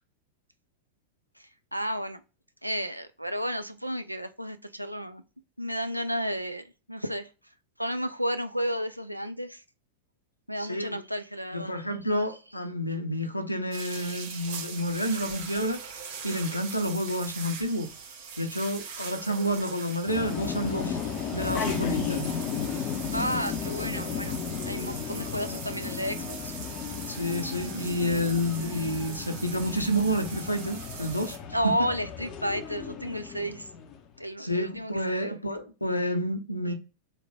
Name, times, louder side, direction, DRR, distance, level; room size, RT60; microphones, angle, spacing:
voice 1, 1.7-2.2 2.6-5.2 5.6-7.3 7.8-9.6 10.5-11.7 23.1-26.5 31.5-33.7 34.2-35.5, equal, 90° right, 0.3 m, -32 dB
voice 2, 10.6-11.0 11.5-17.9 18.4-21.0 21.3-22.4 27.1-31.4 31.6-31.7 34.4-36.7, equal, 85° left, 0.6 m, -29 dB
sound 1, 13.7-31.4, right 6 dB, 55° right, 1.0 m, -41 dB
sound 2, 20.1-34.0, left 7 dB, 35° left, 0.5 m, -34 dB
3.2 x 2.1 x 3.5 m
figure-of-eight pair, 90°, 0 cm